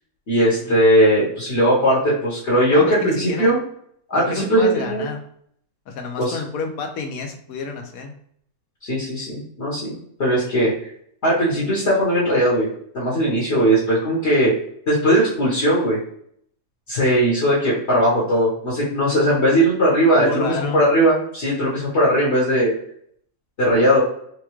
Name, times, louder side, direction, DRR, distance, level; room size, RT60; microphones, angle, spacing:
voice 1, 0.3-3.6 4.1-5.1 6.2-6.4 8.8-10.9 11.2-12.7 12.9-14.5 14.9-16.0 16.9-22.7 23.6-24.0, equal, 55° left, -7 dB, 1.4 m, -18 dB
voice 2, 2.7-3.5 4.1-5.2 5.9-8.1 20.2-20.8, left 4 dB, 85° left, 4 dB, 1.1 m, -30 dB
4.5 x 2.3 x 3.0 m, 0.67 s
omnidirectional pair, 1.5 m